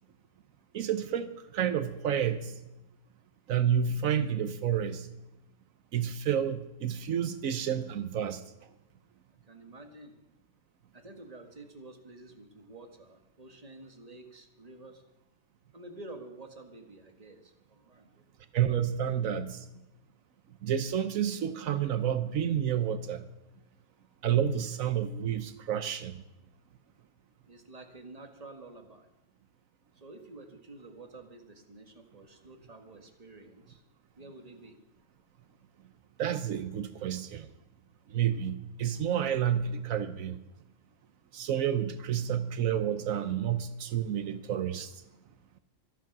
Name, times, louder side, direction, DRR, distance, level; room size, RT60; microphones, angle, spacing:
voice 1, 0.7-2.6 3.5-5.1 5.9-8.4 18.5-19.7 20.6-23.2 24.2-26.2 36.2-37.5 38.1-40.4 41.3-44.9, right 9 dB, 80° right, 11 dB, 1.2 m, -30 dB
voice 2, 9.5-10.2 10.9-15.0 15.7-18.2 27.5-29.1 30.0-33.8 34.2-34.8, right 2 dB, 30° right, 5 dB, 1.7 m, -49 dB
24.5 x 8.3 x 6.0 m, 0.91 s
omnidirectional pair, 1.4 m